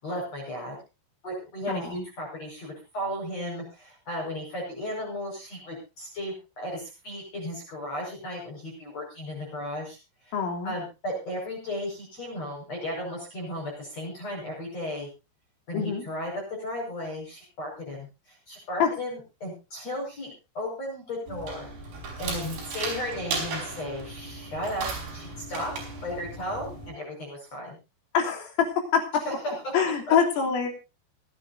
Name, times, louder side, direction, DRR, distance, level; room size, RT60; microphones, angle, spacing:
voice 1, 0.0-0.8 1.2-10.0 10.2-10.3 10.6-15.1 15.7-20.3 20.5-21.7 22.2-24.9 25.1-25.7 26.0-27.8 29.2-29.7 30.1-30.2, left 1 dB, 30° left, -1 dB, 6.3 m, -35 dB
voice 2, 1.7-2.0 10.3-10.8 15.7-16.1 18.8-18.9 28.1-28.6 28.9-29.0 29.7-30.7, left 7 dB, 75° left, 2 dB, 5.8 m, -25 dB
sound 1, 21.3-26.9, right 3 dB, 50° right, 6.7 m, -36 dB
26.0 x 10.0 x 2.7 m, 0.30 s
omnidirectional pair, 6.0 m